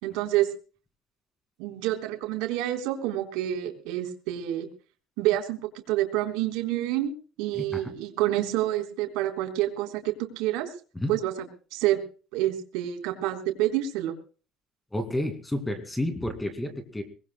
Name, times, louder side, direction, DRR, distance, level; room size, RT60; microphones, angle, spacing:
voice 1, 0.0-0.5 1.6-4.7 5.2-5.6 5.9-10.7 11.1-12.0 12.3-14.2, right 14 dB, 85° right, 5 dB, 3.9 m, -28 dB
voice 2, 7.5-7.9 11.0-11.1 14.9-17.0, left 1 dB, 5° left, 8 dB, 2.3 m, -31 dB
25.0 x 20.5 x 2.2 m, 0.38 s
cardioid pair, 175°, 0 cm